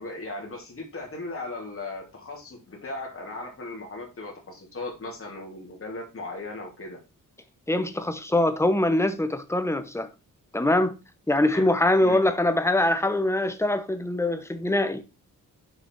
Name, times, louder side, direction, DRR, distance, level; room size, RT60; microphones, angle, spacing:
voice 1, 0.0-7.0 11.3-11.6 12.0-12.2, left 2 dB, 40° left, 2.8 m, -37 dB
voice 2, 7.7-10.1 10.5-10.9 11.3-15.0, left 1 dB, 10° left, 0.8 m, -23 dB
6.9 x 4.9 x 4.6 m
wide cardioid pair, 130°, 33 cm